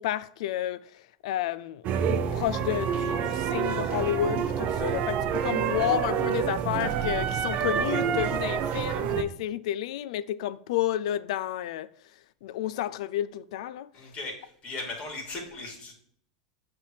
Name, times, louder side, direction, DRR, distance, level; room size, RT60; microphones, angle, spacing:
voice 1, 0.0-11.9 12.4-13.9, left 12 dB, 75° left, 0.4 m, -31 dB
sound 1, 1.8-9.2, right 8 dB, 45° right, 0.6 m, -28 dB
voice 2, 13.9-15.9, left 2 dB, 35° left, 2.6 m, -38 dB
7.8 x 3.5 x 4.7 m
hypercardioid pair, 110°, 3 cm